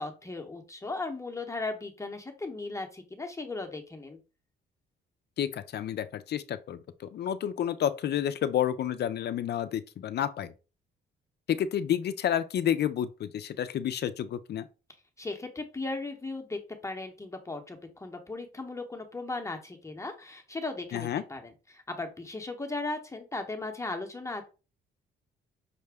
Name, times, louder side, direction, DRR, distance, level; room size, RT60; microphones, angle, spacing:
voice 1, 0.0-4.2 15.2-24.4, left 3 dB, 15° left, 0.8 m, -37 dB
voice 2, 5.4-10.5 11.5-14.7 20.9-21.2, left 10 dB, 55° left, 0.5 m, -30 dB
5.8 x 2.1 x 3.4 m
cardioid pair, 90°, 20 cm